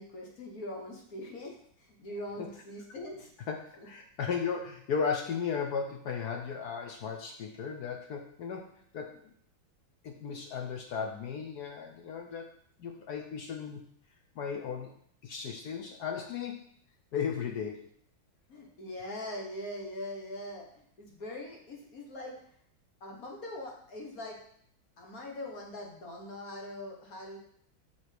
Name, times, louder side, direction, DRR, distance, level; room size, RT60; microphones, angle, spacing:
voice 1, 0.0-3.3 3.8-3.9 18.5-22.4 23.0-24.4 25.0-27.4, left 1 dB, 50° left, 0 dB, 1.7 m, -42 dB
voice 2, 3.5-8.7 8.9-9.3 10.0-12.5 12.8-13.8 14.4-14.9 15.2-16.6 17.1-17.9, left 6 dB, 70° left, 4 dB, 1.0 m, -35 dB
5.9 x 5.9 x 4.6 m, 0.65 s
omnidirectional pair, 2.2 m